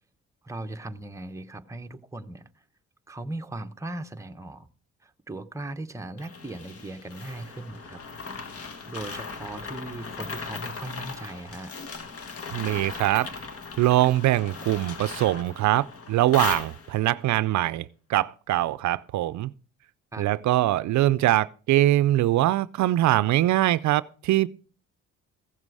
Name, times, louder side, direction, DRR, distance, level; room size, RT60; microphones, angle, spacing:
voice 1, 0.4-2.4 3.1-4.7 5.0-8.0 8.6-11.7 20.1-20.3, right 2 dB, 10° right, 0.8 m, -38 dB
sound 1, 6.2-17.2, left 4 dB, 50° left, 1.5 m, -38 dB
voice 2, 12.5-13.3 13.8-19.5 20.2-24.5, right 15 dB, 70° right, 0.5 m, -23 dB
15.0 x 7.4 x 4.7 m
cardioid pair, 90°, 30 cm